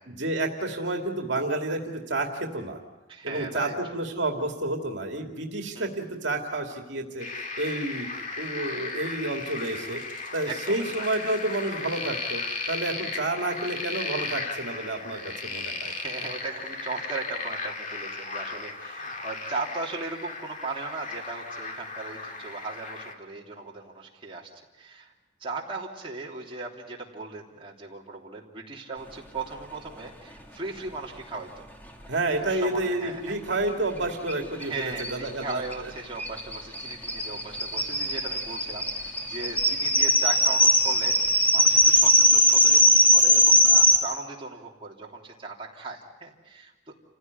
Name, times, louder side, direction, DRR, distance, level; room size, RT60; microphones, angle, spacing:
voice 1, 0.1-2.8 3.2-8.1 8.4-10.0 10.3-12.4 12.7-15.9 32.1-35.6, right 2 dB, 70° right, 3 dB, 2.4 m, -30 dB
voice 2, 3.1-3.7 5.7-5.9 10.5-11.0 15.8-24.5 24.8-25.1 25.4-31.5 32.4-33.4 34.6-46.9, right 3 dB, 30° right, -2 dB, 3.2 m, -37 dB
sound 1, 7.2-23.1, left 3 dB, 40° left, 2.3 m, -35 dB
sound 2, 34.3-34.4 34.6-34.7 35.0-44.0, equal, 10° left, 2.2 m, -20 dB
28.5 x 16.0 x 9.5 m, 1.1 s
head